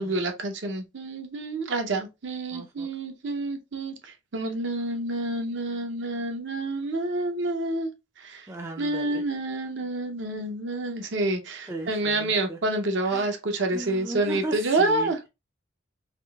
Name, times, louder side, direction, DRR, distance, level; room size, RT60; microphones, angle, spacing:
voice 1, 0.0-7.9 8.2-8.5 8.8-15.2, right 2 dB, 65° right, 0.6 m, -28 dB
voice 2, 2.5-2.9 8.5-9.2 11.7-12.6 13.0-13.4 13.7-15.3, right 2 dB, 15° right, 0.3 m, -37 dB
3.6 x 2.4 x 2.2 m
head